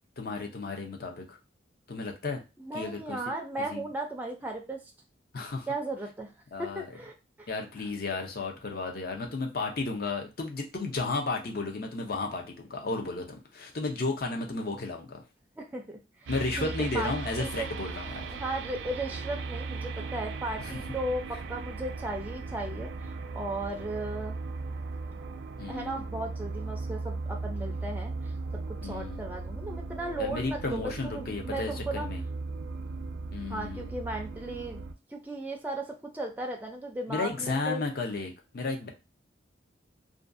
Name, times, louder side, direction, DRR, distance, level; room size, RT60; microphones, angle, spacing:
voice 1, 0.2-1.4 1.9-2.4 2.7-3.2 3.7-3.9 5.3-5.7 6.5-6.9 7.5-15.2 16.3-18.3 20.6-20.7 25.6-26.0 28.8-29.2 30.2-32.2 33.3-33.9 37.1-38.9, left 3 dB, 50° left, 3 dB, 0.5 m, -33 dB
voice 2, 2.6-4.8 5.7-6.3 6.6-7.1 7.4-7.5 15.6-16.3 16.6-17.1 17.4-17.7 18.3-24.4 25.7-32.1 33.5-34.8 35.1-37.8, right 1 dB, 10° right, 1 dB, 0.4 m, -36 dB
sound 1, 16.3-34.9, right 3 dB, 75° right, 0.3 m, -37 dB
2.5 x 2.3 x 2.5 m, 0.28 s
head